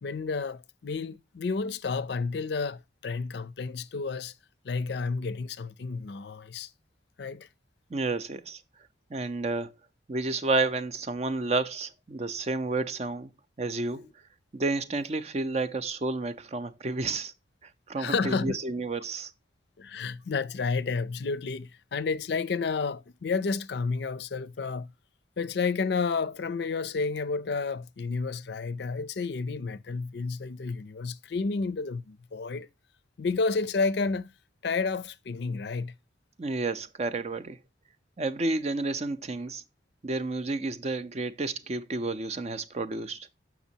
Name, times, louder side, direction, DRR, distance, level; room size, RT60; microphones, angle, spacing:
voice 1, 0.0-4.3 4.6-6.7 7.2-7.5 18.0-18.5 19.8-24.9 25.4-32.7 33.2-34.3 34.6-35.9, left 4 dB, 65° left, 0.4 m, -31 dB
voice 2, 7.9-8.6 9.1-9.7 10.1-13.3 13.6-14.1 14.5-17.3 17.6-19.3 36.4-37.6 38.2-39.6 40.0-43.3, right 3 dB, 35° right, 0.5 m, -31 dB
7.2 x 5.9 x 2.7 m
head